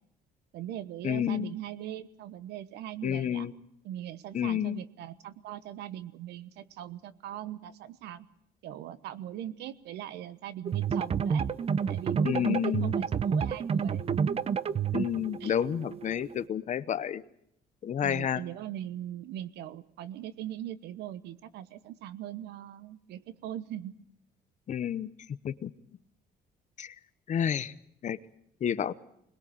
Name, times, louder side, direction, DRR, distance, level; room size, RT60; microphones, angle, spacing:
voice 1, 0.5-3.5 3.8-8.3 8.6-11.5 11.9-14.0 15.4-15.5 18.0-23.9, right 12 dB, 80° right, 15 dB, 1.1 m, -40 dB
voice 2, 1.0-1.5 3.0-3.5 4.3-4.8 12.2-12.9 14.9-17.2 17.8-18.4 24.7-25.1 25.4-25.7 26.8-26.9 27.3-27.7 28.0-28.2 28.6-28.9, left 9 dB, 45° left, 15 dB, 0.9 m, -30 dB
sound 1, 10.7-16.5, right 7 dB, 35° right, 0.8 m, -30 dB
21.5 x 20.5 x 7.8 m, 0.74 s
cardioid pair, 110°, 17 cm